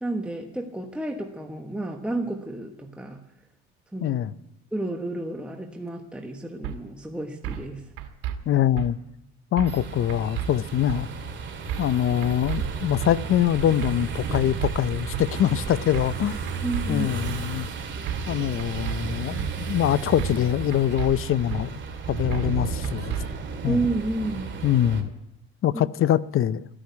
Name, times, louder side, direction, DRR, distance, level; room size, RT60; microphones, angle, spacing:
voice 1, 0.0-3.2 3.9-4.2 4.7-7.9 16.6-17.1 23.6-24.5, right 2 dB, 5° right, 1.3 m, -31 dB
voice 2, 4.0-4.3 8.5-9.0 9.5-11.1 11.8-16.4 16.9-17.7 18.3-21.8 22.1-23.2 23.6-23.8 24.6-25.1 25.6-26.7, left 11 dB, 45° left, 0.6 m, -24 dB
sound 1, 6.6-6.8 7.4-7.7 8.0-8.4 8.8-8.9 9.6-9.8 10.1-10.5 10.9-11.0 11.7-12.0 12.2-12.6 13.0-13.1 13.8-14.1 14.3-14.7 15.1-15.3 15.9-16.2 16.5-16.9 17.3-17.4 18.1-18.3 18.6-19.0 19.4-19.5 20.2-20.5 20.7-21.1 21.5-21.6 22.3-22.6 22.8-23.2, right 11 dB, 80° right, 1.9 m, -32 dB
sound 2, 9.7-25.0, right 4 dB, 40° right, 2.5 m, -33 dB
14.0 x 10.0 x 9.5 m
supercardioid pair, 100°, 31 cm